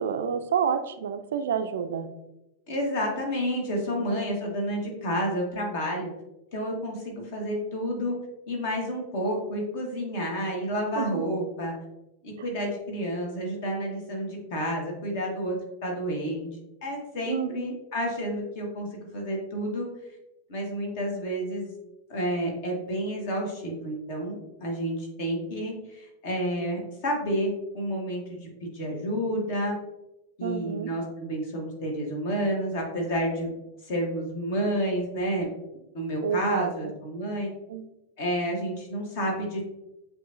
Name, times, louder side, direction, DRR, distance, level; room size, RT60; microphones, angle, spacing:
voice 1, 0.0-2.1 4.1-4.2 11.0-11.1 17.3-17.7 30.4-30.9 36.2-36.7 37.7-37.8, right 7 dB, 60° right, 8 dB, 0.3 m, -28 dB
voice 2, 2.7-6.1 6.5-8.1 8.5-11.7 12.2-15.5 15.8-16.5 16.8-19.9 20.5-21.7 22.1-29.7 30.4-33.5 33.8-35.5 35.9-37.5 38.2-39.7, equal, 50° left, 0 dB, 1.4 m, -30 dB
7.7 x 2.6 x 2.6 m, 0.93 s
figure-of-eight pair, 90°, 0 cm